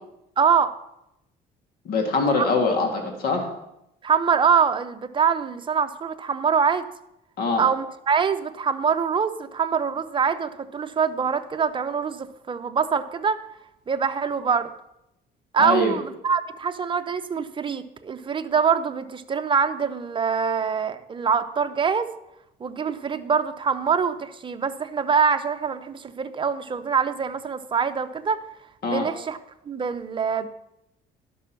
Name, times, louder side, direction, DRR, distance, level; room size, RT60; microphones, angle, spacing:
voice 1, 0.4-0.7 2.4-2.5 4.0-6.9 7.6-13.4 13.9-14.7 15.5-22.1 22.6-28.4 28.9-29.4 29.7-30.5, right 6 dB, 30° right, 10 dB, 0.7 m, -24 dB
voice 2, 1.8-3.5 7.4-7.6 15.6-15.9 28.8-29.1, left 3 dB, 60° left, 2 dB, 1.8 m, -23 dB
11.5 x 6.2 x 5.8 m, 0.85 s
cardioid pair, 110°, 17 cm